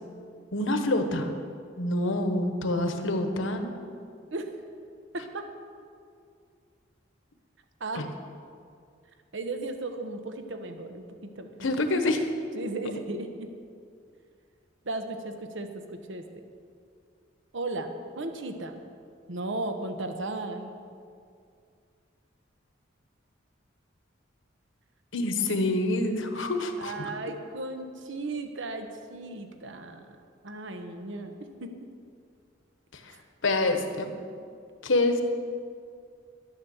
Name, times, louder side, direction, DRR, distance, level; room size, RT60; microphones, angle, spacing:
voice 1, 0.5-1.3 1.8-3.7 8.0-8.1 11.6-12.3 25.1-27.1 33.4-34.1 34.8-35.2, left 2 dB, 70° left, 6 dB, 1.2 m, -26 dB
voice 2, 5.1-5.5 7.8-8.1 9.3-11.0 11.4-11.7 12.5-13.5 14.8-15.7 16.1-16.2 17.5-18.8 19.3-20.8 26.8-30.1 30.4-31.9, right 2 dB, 65° right, 6 dB, 1.1 m, -35 dB
12.0 x 9.3 x 7.1 m, 2.3 s
head